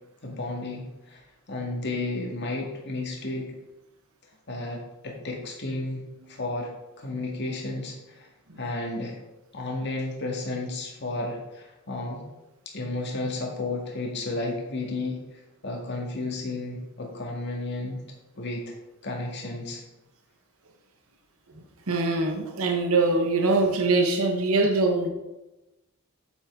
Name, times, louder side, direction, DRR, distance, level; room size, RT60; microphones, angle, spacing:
voice 1, 0.2-1.2 1.5-3.6 4.5-6.7 7.0-8.3 8.6-9.2 9.5-12.2 12.7-15.2 15.6-18.0 18.4-18.7 19.0-19.8, left 2 dB, 50° left, 0 dB, 1.9 m, -32 dB
voice 2, 21.9-25.1, right 3 dB, 70° right, 3 dB, 1.1 m, -23 dB
8.4 x 8.0 x 3.7 m, 1.0 s
head